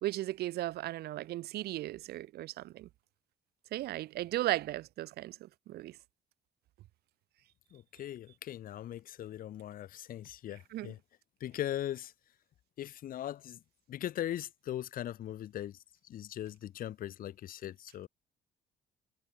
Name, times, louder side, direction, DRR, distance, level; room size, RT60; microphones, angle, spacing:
voice 1, 0.0-2.9 3.7-5.4 5.7-6.0 10.7-10.9, right 15 dB, 70° right, 1.1 m, -36 dB
voice 2, 7.7-11.0 11.4-12.1 12.8-13.6 13.9-15.8 16.0-18.1, left 12 dB, 55° left, 1.2 m, -39 dB
cardioid pair, 110°, 17 cm